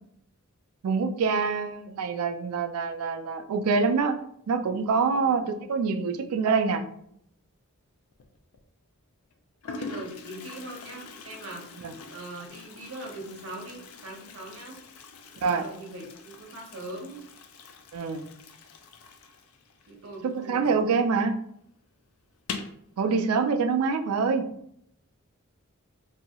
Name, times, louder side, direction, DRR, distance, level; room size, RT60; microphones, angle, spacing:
voice 1, 0.8-4.2 4.5-5.4 5.7-6.8 11.8-11.9 15.4-15.6 17.9-18.2 20.3-21.4 23.0-24.4, right 5 dB, 85° right, 7 dB, 0.4 m, -25 dB
Toilet flush, 8.1-8.6 9.3-9.4 9.6-20.9 21.2-21.3 21.6-21.7 22.3-22.8, left 4 dB, 80° left, 0.4 m, -43 dB
voice 2, 9.7-11.7 12.1-14.8 15.6-17.3 19.9-20.8, right 1 dB, 65° right, -1 dB, 0.8 m, -41 dB
2.7 x 2.3 x 2.8 m, 0.71 s
head